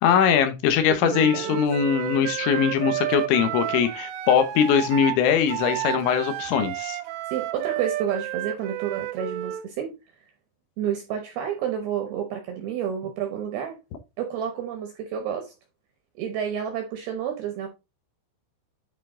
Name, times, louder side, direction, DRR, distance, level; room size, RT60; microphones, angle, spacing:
voice 1, 0.0-7.0, left 8 dB, 75° left, 3.2 m, -21 dB
voice 2, 0.9-1.6 7.3-10.0 10.8-13.8 14.2-15.5 16.2-17.7, right 8 dB, 75° right, 2.4 m, -30 dB
Wind instrument woodwind instrument, 1.1-9.6, right 14 dB, 90° right, 3.3 m, -31 dB
10.0 x 4.4 x 3.7 m
omnidirectional pair, 5.7 m